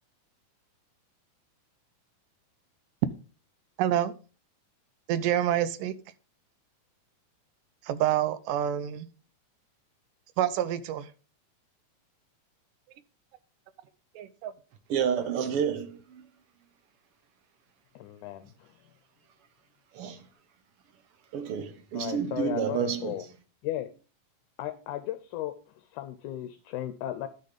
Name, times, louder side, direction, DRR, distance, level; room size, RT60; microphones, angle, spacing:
voice 1, 3.8-4.1 5.1-5.9 7.8-9.1 10.4-11.1 14.2-14.5, right 11 dB, 90° right, 2.4 m, -27 dB
voice 2, 14.9-16.3 19.9-20.3 21.3-23.1, right 8 dB, 60° right, 1.6 m, -30 dB
voice 3, 17.9-18.9 20.2-20.3 21.9-23.2 23.6-23.9 24.6-27.3, left 13 dB, 75° left, 2.1 m, -36 dB
9.8 x 6.6 x 5.2 m
omnidirectional pair, 3.7 m